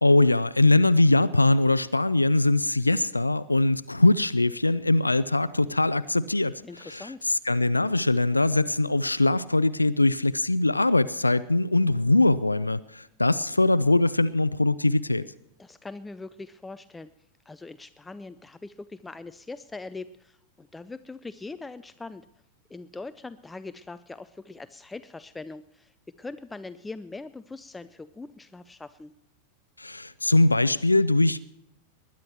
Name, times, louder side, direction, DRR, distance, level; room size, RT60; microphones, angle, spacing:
voice 1, 0.0-15.3 29.8-31.4, left 2 dB, 85° left, 0.4 m, -22 dB
voice 2, 6.6-7.2 15.6-17.1 17.5-22.3 22.7-29.1, left 3 dB, 10° left, 0.4 m, -41 dB
20.5 x 10.5 x 4.5 m
figure-of-eight pair, 90°, 0 cm